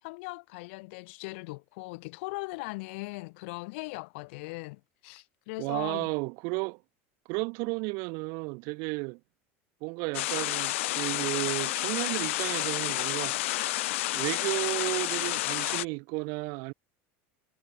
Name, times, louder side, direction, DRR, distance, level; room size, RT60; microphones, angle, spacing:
voice 1, 0.0-6.1, left 26 dB, 70° left, 6.7 m, -39 dB
voice 2, 5.6-6.8 7.3-9.2 9.8-16.7, right 32 dB, 60° right, 1.5 m, -33 dB
sound 1, 10.1-15.8, left 18 dB, 85° left, 0.9 m, -30 dB
supercardioid pair, 150°, 7 cm